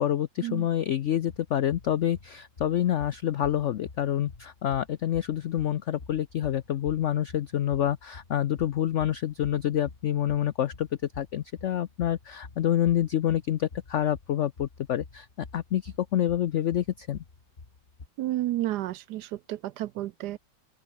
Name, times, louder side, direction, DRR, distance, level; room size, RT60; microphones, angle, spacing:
voice 1, 0.0-10.9 11.2-15.3 15.5-17.2, left 11 dB, 75° left, 0.6 m, -27 dB
sound 1, 1.3-18.1, left 4 dB, 30° left, 2.2 m, -49 dB
voice 2, 18.2-20.4, right 15 dB, 70° right, 1.1 m, -31 dB
open air
omnidirectional pair, 2.0 m